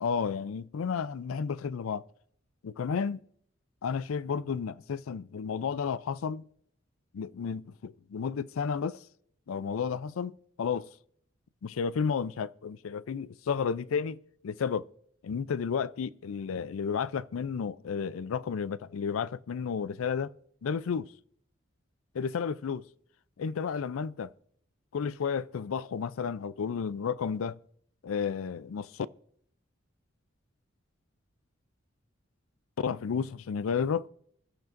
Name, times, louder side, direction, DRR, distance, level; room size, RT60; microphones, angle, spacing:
voice 1, 0.0-2.0 2.6-3.2 3.8-6.4 7.1-9.0 9.5-10.9 11.6-14.9 15.2-20.3 20.6-21.1 22.1-22.8 23.4-24.3 24.9-27.6 28.0-29.1 32.8-34.1, left 6 dB, 85° left, 0.4 m, -32 dB
22.0 x 12.0 x 2.6 m
head